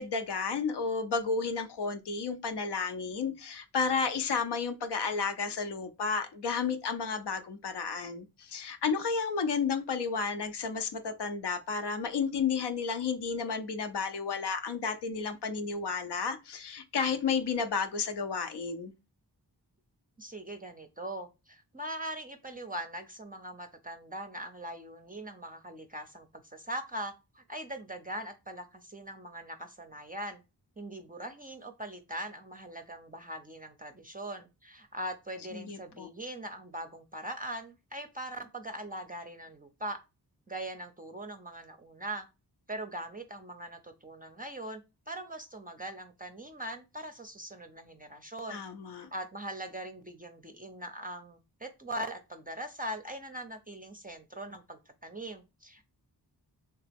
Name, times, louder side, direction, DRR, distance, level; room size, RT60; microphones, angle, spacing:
voice 1, 0.0-18.9 35.5-36.1 48.5-49.1, left 5 dB, 70° left, 0.7 m, -32 dB
voice 2, 20.2-30.4 30.8-40.0 40.5-42.3 42.7-44.8 45.1-48.6 49.1-55.8, right 1 dB, 20° right, 0.5 m, -41 dB
3.3 x 2.8 x 3.4 m
cardioid pair, 45°, 41 cm